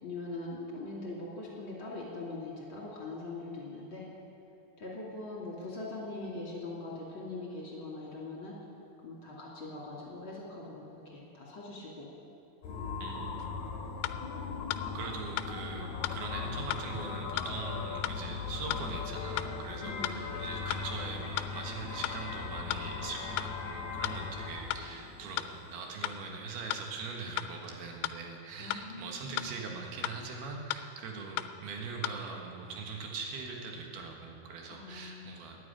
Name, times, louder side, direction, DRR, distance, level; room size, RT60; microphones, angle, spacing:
voice 1, 0.0-4.1 4.8-8.6 9.0-12.1 19.8-20.1 28.6-29.5 34.7-35.3, left 2 dB, 35° left, -4 dB, 2.9 m, -42 dB
sound 1, 12.6-26.2, left 5 dB, 65° left, 2.3 m, -39 dB
voice 2, 13.0-13.4 14.9-35.6, right 4 dB, 90° right, 1 dB, 3.7 m, -41 dB
sound 2, 13.4-13.5 14.0-14.2 14.7-14.8 15.4-15.5 16.0-16.2 16.7-16.8 17.4-17.5 18.0-18.2 18.7-18.8 19.4-19.5 20.0-20.2 20.7-20.8 21.4-21.5 22.0-22.2 22.7-22.8 23.4-23.5 24.0-24.2 24.7-24.8 25.4-25.5 26.0-26.2 26.7-26.8 27.4-27.5 28.0-28.2 28.7-28.8 29.4-29.5 30.0-30.2 30.7-30.8 31.4-31.5 32.0-32.2, left 15 dB, 90° left, 2.5 m, -34 dB
13.5 x 9.5 x 10.0 m, 2.6 s
omnidirectional pair, 4.3 m